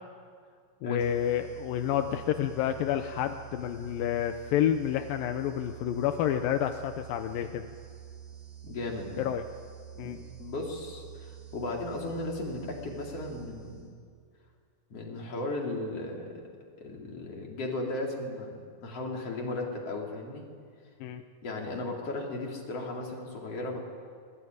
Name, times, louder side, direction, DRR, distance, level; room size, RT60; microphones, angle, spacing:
voice 1, 0.8-7.7 9.2-9.4 10.0-10.2 21.0-21.2, left 10 dB, 80° left, 7 dB, 2.6 m, -29 dB
sound 1, 1.0-14.1, right 9 dB, 75° right, 4.5 m, -48 dB
voice 2, 8.6-9.2 10.0-14.0 14.9-16.4 16.8-20.4 21.4-23.8, left 2 dB, 45° left, -1 dB, 4.6 m, -36 dB
26.0 x 21.0 x 9.6 m, 2.1 s
omnidirectional pair, 4.0 m